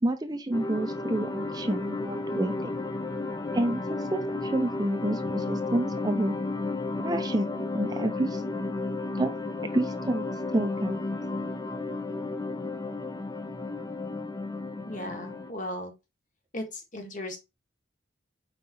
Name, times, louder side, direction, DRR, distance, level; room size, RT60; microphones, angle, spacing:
voice 1, 0.0-2.7 3.5-3.8 4.1-6.4 7.0-8.4 9.1-9.3 9.7-10.2 10.5-11.0, right 1 dB, 20° right, 0.6 m, -29 dB
sound 1, 0.5-15.5, left 2 dB, 20° left, 0.6 m, -33 dB
voice 2, 14.9-15.9 16.5-17.4, left 1 dB, 45° left, 1.8 m, -36 dB
5.5 x 4.1 x 4.1 m
head